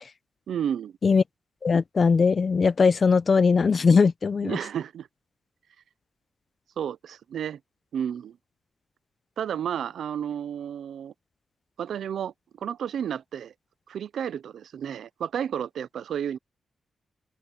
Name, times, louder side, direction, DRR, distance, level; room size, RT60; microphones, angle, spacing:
voice 1, 0.5-0.9 4.4-5.1 6.8-7.6 7.9-8.4 9.4-11.1 11.8-13.5 13.9-16.4, right 9 dB, 80° right, 0.8 m, -32 dB
voice 2, 1.6-4.6, left 5 dB, 50° left, 0.8 m, -20 dB
open air
cardioid pair, 60°, 0 cm